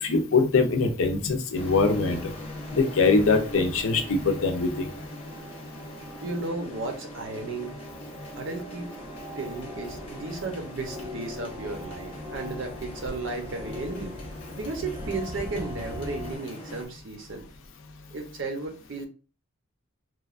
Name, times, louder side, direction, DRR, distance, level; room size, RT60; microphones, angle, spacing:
voice 1, 0.0-2.3 2.7-4.9, left 4 dB, 75° left, 5 dB, 0.5 m, -23 dB
sound 1, 1.5-16.9, equal, 25° left, 0.7 m, -41 dB
voice 2, 6.2-7.7 8.4-8.9 9.4-14.2 14.6-17.5 18.1-19.1, right 3 dB, 60° right, 3 dB, 0.7 m, -34 dB
sound 2, 9.0-16.4, left 2 dB, 20° right, 0.5 m, -41 dB
3.0 x 2.3 x 2.4 m, 0.36 s
head